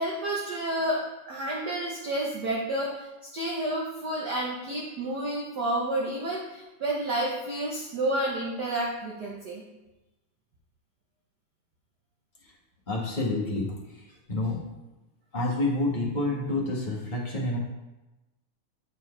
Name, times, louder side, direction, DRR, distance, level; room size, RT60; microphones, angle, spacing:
voice 1, 0.0-3.1 3.3-9.6, right 1 dB, 60° right, -3 dB, 1.0 m, -30 dB
voice 2, 12.9-13.7 14.3-14.6 15.3-17.6, left 2 dB, 25° left, -3 dB, 1.1 m, -28 dB
13.5 x 4.6 x 3.3 m, 1.0 s
omnidirectional pair, 3.3 m